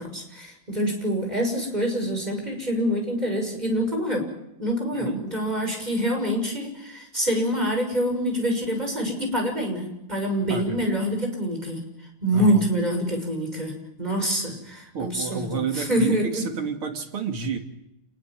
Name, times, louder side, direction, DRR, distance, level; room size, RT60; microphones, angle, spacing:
voice 1, 0.0-4.2 4.6-11.8 12.2-13.7 14.0-16.5, equal, 20° right, 3 dB, 6.5 m, -26 dB
voice 2, 4.9-5.2 10.5-10.8 12.3-12.6 14.9-17.6, right 5 dB, 75° right, 4 dB, 3.5 m, -30 dB
28.0 x 21.0 x 7.6 m, 0.83 s
omnidirectional pair, 2.4 m